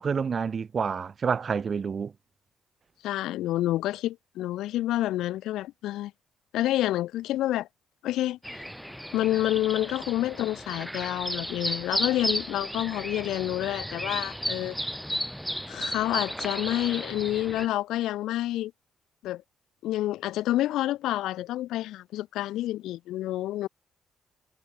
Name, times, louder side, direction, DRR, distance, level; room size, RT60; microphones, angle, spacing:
voice 1, 0.0-2.1, right 6 dB, 45° right, 0.6 m, -28 dB
voice 2, 3.0-6.1 6.5-7.7 8.0-8.4 9.1-14.8 15.7-18.7 19.2-19.4 19.8-23.7, left 14 dB, 85° left, 0.5 m, -28 dB
sound 1, 8.4-17.7, equal, ahead, 1.6 m, -34 dB
cardioid pair, 90°, 0 cm